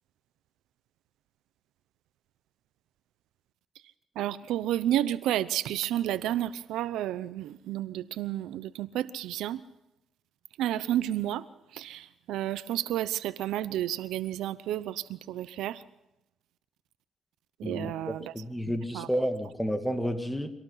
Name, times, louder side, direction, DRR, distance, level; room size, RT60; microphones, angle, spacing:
voice 1, 4.2-9.6 10.6-11.5 11.7-15.8 17.6-18.3 18.9-19.1, right 12 dB, 85° right, 15 dB, 0.8 m, -31 dB
voice 2, 18.3-20.5, equal, 5° left, 6 dB, 2.3 m, -30 dB
25.5 x 18.5 x 5.8 m, 0.90 s
cardioid pair, 90°, 0 cm